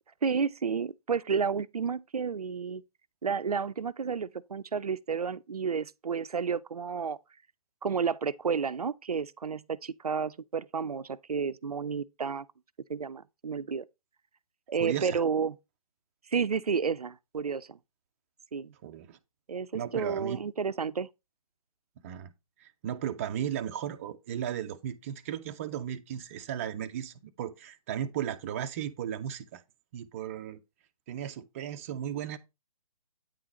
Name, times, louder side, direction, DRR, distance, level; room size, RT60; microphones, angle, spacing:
voice 1, 0.2-2.8 3.2-7.2 7.8-12.4 12.9-13.8 14.7-15.6 16.3-17.8 18.5-18.7 19.5-19.7 19.9-21.1, right 6 dB, 90° right, 0.4 m, -31 dB
voice 2, 14.8-15.2 18.8-19.2 19.7-20.4 22.0-22.3 22.6-29.6 29.9-30.6 31.1-32.4, right 10 dB, 25° right, 0.4 m, -35 dB
8.8 x 3.8 x 4.2 m
figure-of-eight pair, 140°, 19 cm